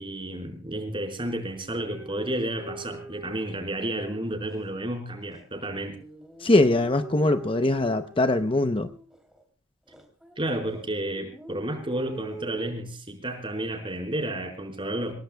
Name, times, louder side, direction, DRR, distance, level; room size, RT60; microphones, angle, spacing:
voice 1, 0.0-6.0 10.4-15.1, right 1 dB, 25° right, 4 dB, 4.4 m, -31 dB
sound 1, 1.8-4.7 5.2-9.4 9.9-10.8 11.1-12.7, right 2 dB, 5° right, 3.0 m, -44 dB
voice 2, 6.4-8.9, left 2 dB, 25° left, 9 dB, 0.7 m, -22 dB
28.5 x 18.0 x 2.3 m, 0.37 s
head